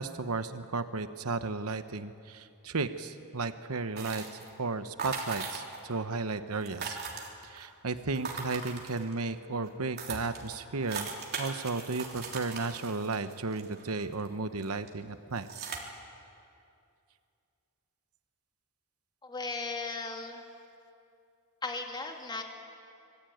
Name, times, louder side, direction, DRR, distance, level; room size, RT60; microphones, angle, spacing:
voice 1, 0.0-4.2 4.6-7.0 7.4-11.1 11.4-15.5, right 3 dB, 70° right, 10 dB, 1.0 m, -34 dB
sound 1, 4.0-4.6 5.0-5.9 6.2-6.3 6.5-7.6 8.1-9.2 9.7-9.8 10.0-14.3 14.6-14.9 15.4-15.8, right 5 dB, 45° right, 3.4 m, -39 dB
voice 2, 19.2-20.4 21.6-22.4, left 3 dB, 20° left, 3 dB, 2.5 m, -36 dB
26.0 x 21.0 x 9.3 m, 2.5 s
head